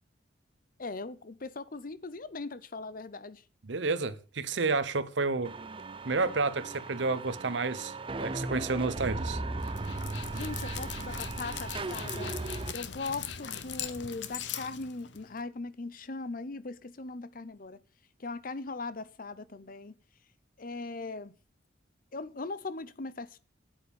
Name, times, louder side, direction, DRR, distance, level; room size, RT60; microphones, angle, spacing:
voice 1, 0.8-3.4 10.3-12.4 12.7-17.8 18.2-20.0 20.6-21.3 22.1-23.4, left 3 dB, 50° left, 0.8 m, -39 dB
voice 2, 3.7-5.5 6.0-9.4, right 3 dB, 75° right, 0.9 m, -30 dB
sound 1, 5.4-12.7, right 2 dB, 30° right, 0.7 m, -37 dB
Dog, 9.6-15.4, left 8 dB, 75° left, 1.0 m, -40 dB
9.1 x 8.7 x 7.1 m
head